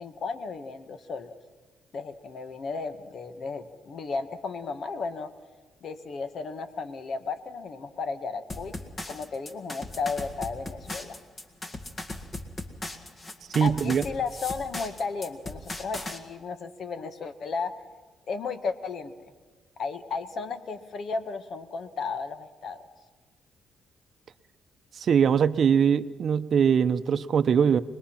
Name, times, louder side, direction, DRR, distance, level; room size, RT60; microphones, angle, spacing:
voice 1, 0.0-1.3 1.9-5.3 5.8-8.7 9.1-11.2 13.6-17.7 18.3-19.3 19.8-22.9, left 4 dB, 60° left, 10 dB, 1.5 m, -34 dB
sound 1, 8.5-16.2, left 2 dB, 30° left, 2.0 m, -38 dB
voice 2, 13.5-14.0 25.0-27.8, right 7 dB, 55° right, 13 dB, 0.7 m, -22 dB
25.0 x 20.5 x 5.8 m, 1.3 s
cardioid pair, 90°, 0 cm